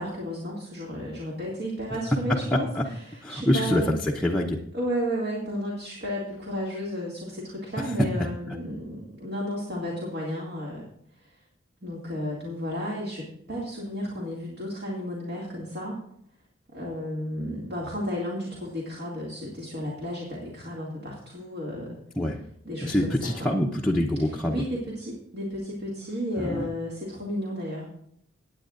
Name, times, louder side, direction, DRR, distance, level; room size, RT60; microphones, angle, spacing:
voice 1, 0.0-3.9 4.7-10.8 11.2-11.3 11.8-16.0 16.7-22.0 22.6-23.5 24.5-27.8, equal, 55° right, -4 dB, 2.4 m, -33 dB
voice 2, 2.5-2.8 3.2-4.6 8.5-8.6 22.2-22.4 22.8-24.6 26.4-26.7, left 1 dB, 5° left, -3 dB, 0.7 m, -25 dB
18.0 x 9.0 x 2.6 m, 0.71 s
head